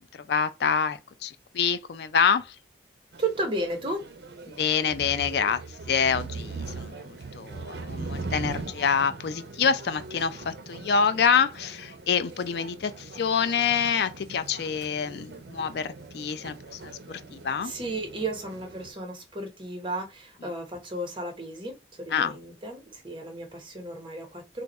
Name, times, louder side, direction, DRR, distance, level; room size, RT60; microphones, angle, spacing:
voice 1, 0.3-2.6 4.5-5.6 5.9-17.7 22.1-22.4, left 6 dB, 65° left, 0.3 m, -26 dB
sound 1, 3.1-18.9, right 3 dB, 65° right, 0.5 m, -41 dB
voice 2, 3.2-4.0 17.6-24.6, right 2 dB, 30° right, 0.9 m, -34 dB
2.5 x 2.3 x 4.0 m
head